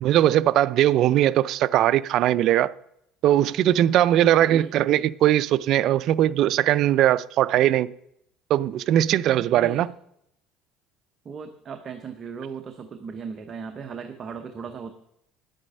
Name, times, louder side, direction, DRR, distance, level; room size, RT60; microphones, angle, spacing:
voice 1, 0.0-2.7 3.2-7.9 8.5-9.9, right 12 dB, 55° right, 0.3 m, -20 dB
voice 2, 4.4-4.7 9.5-9.8 11.2-14.9, right 6 dB, 35° right, 0.8 m, -37 dB
9.9 x 8.9 x 5.3 m
cardioid pair, 135°, 0 cm